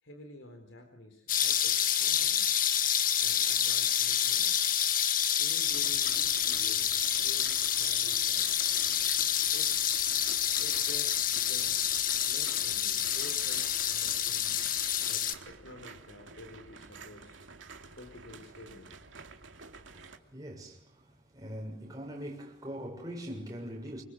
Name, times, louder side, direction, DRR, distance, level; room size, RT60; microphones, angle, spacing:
voice 1, 0.0-2.6 3.2-4.7 5.4-8.6 9.5-9.7 10.6-11.9 12.3-14.7 15.0-17.4 17.9-19.0, left 2 dB, 65° left, 4.2 m, -50 dB
sound 1, 1.3-15.3, left 9 dB, 40° left, 1.5 m, -28 dB
sound 2, 5.6-20.2, right 4 dB, 65° right, 2.7 m, -50 dB
voice 2, 19.9-24.0, equal, 15° right, 6.9 m, -42 dB
27.5 x 25.0 x 7.9 m
head